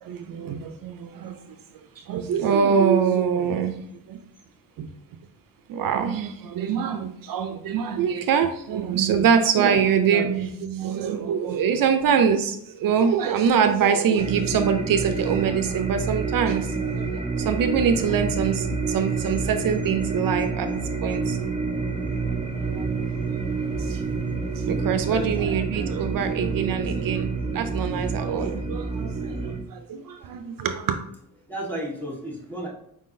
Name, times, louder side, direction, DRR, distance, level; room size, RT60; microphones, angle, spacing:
voice 1, 0.0-1.6 2.0-4.2 4.8-4.9 5.7-21.5 22.3-24.0 24.6-31.0, right 7 dB, 70° right, 7 dB, 0.5 m, -24 dB
sound 1, 14.2-29.6, right 4 dB, 15° right, 0.7 m, -28 dB
voice 2, 24.7-25.5 30.4-30.5 31.5-32.7, right 1 dB, 5° left, -4 dB, 1.1 m, -33 dB
4.7 x 3.7 x 2.6 m, 0.74 s
wide cardioid pair, 140°, 35 cm